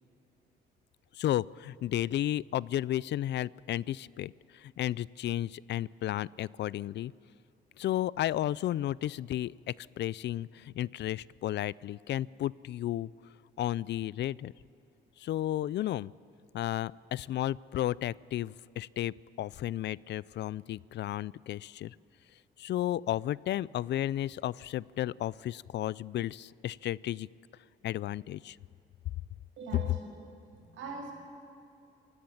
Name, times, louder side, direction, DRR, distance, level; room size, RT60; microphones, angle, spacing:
voice 1, 1.2-7.1 7.8-9.5 10.0-13.1 13.6-14.5 15.2-16.1 16.5-21.9 22.6-27.3 27.8-28.6, left 13 dB, 60° left, 22 dB, 0.4 m, -33 dB
voice 2, 29.6-30.1 30.5-31.1, right 4 dB, 80° right, 1 dB, 6.0 m, -42 dB
27.5 x 17.0 x 7.3 m, 2.7 s
cardioid pair, 90°, 20 cm